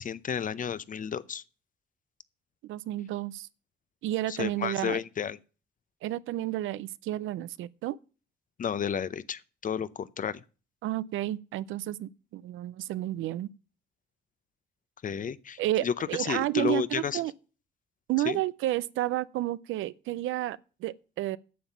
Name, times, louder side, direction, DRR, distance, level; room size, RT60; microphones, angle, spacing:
voice 1, 0.0-1.4 4.3-5.4 8.6-10.4 15.0-15.9 16.2-17.2 18.3-18.4, left 7 dB, 40° left, 0.6 m, -32 dB
voice 2, 2.6-3.5 4.0-5.0 6.0-8.0 10.8-13.5 15.6-17.3 18.1-21.4, right 15 dB, 85° right, 0.5 m, -31 dB
9.3 x 7.1 x 7.2 m
cardioid pair, 90°, 20 cm